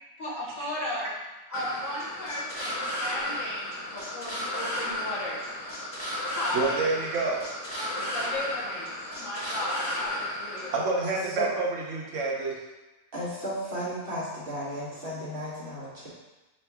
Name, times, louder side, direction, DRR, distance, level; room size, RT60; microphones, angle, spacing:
voice 1, 0.2-1.1 1.5-5.4 6.3-7.0 7.8-8.9 9.2-10.7, left 1 dB, 65° left, -5 dB, 1.5 m, -35 dB
sound 1, 1.5-10.7, left 1 dB, 25° left, 1.3 m, -33 dB
voice 2, 6.5-7.4 10.7-12.5, right 3 dB, 65° right, -2 dB, 1.0 m, -28 dB
voice 3, 11.0-11.5 13.1-16.1, equal, 45° right, -7 dB, 1.4 m, -34 dB
3.4 x 3.4 x 4.6 m, 1.1 s
omnidirectional pair, 1.4 m